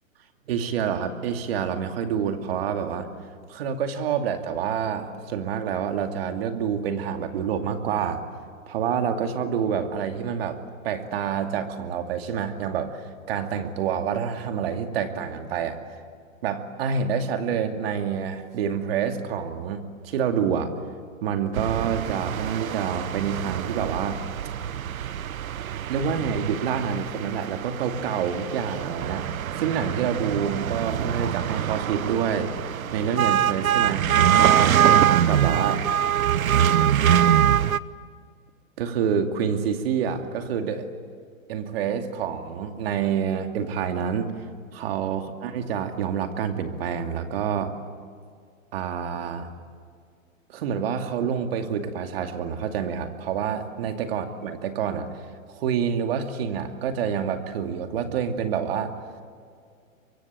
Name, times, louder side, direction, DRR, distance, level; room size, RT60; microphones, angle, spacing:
voice 1, 0.5-3.1 3.5-8.2 8.7-15.8 16.4-20.7 21.2-24.2 25.9-29.3 29.6-35.8 38.8-40.8 41.5-44.3 44.7-47.7 48.7-49.5 50.5-55.1 55.5-58.9, right 7 dB, 45° right, 6 dB, 2.5 m, -27 dB
sound 1, 21.5-37.8, right 10 dB, 85° right, 0.9 m, -24 dB
24.5 x 23.5 x 9.1 m, 2.1 s
hypercardioid pair, 155°, 41 cm